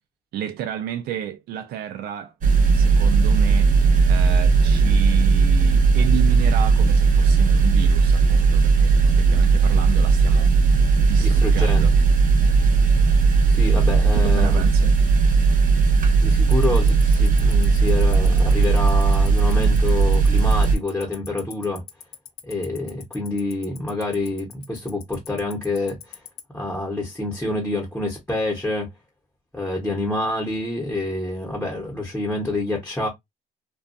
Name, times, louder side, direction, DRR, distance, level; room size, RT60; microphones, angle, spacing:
voice 1, 0.3-2.3 2.7-3.7 4.1-10.6 11.0-11.9 14.1-14.9, right 10 dB, 65° right, 0.4 m, -31 dB
sound 1, 2.4-20.7, right 4 dB, 50° right, 0.8 m, -17 dB
voice 2, 11.2-11.9 13.0-13.1 13.5-14.6 16.1-21.8 22.4-26.2 26.5-28.9 29.5-33.1, left 2 dB, 5° left, 0.9 m, -27 dB
Tick-tock, 16.5-26.4, left 12 dB, 70° left, 0.7 m, -38 dB
2.4 x 2.3 x 2.5 m
cardioid pair, 110°, 17 cm